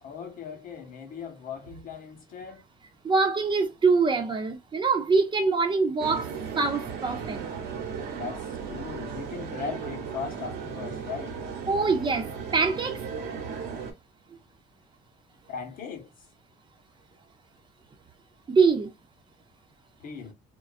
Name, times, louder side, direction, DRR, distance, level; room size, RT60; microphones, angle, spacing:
voice 1, 0.0-2.6 8.1-11.3 15.5-16.1 20.0-20.3, left 6 dB, 55° left, 1.0 m, -38 dB
voice 2, 3.0-6.3 6.5-7.4 11.7-13.0 18.5-18.9, right 4 dB, 25° right, 0.9 m, -24 dB
sound 1, 6.0-13.9, right 6 dB, 75° right, 1.0 m, -36 dB
2.4 x 2.3 x 2.4 m
cardioid pair, 110°, 17 cm